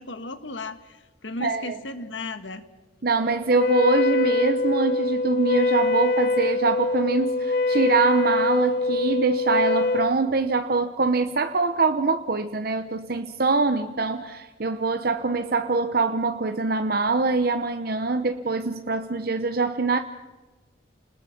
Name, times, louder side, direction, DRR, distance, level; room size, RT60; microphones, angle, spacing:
voice 1, 0.0-2.7, left 2 dB, 80° left, 10 dB, 1.6 m, -35 dB
voice 2, 1.4-1.8 3.0-20.0, right 3 dB, 50° right, 7 dB, 0.9 m, -24 dB
Wind instrument woodwind instrument, 3.5-10.2, left 3 dB, 55° left, 0.9 m, -24 dB
29.5 x 20.0 x 6.0 m, 1.2 s
head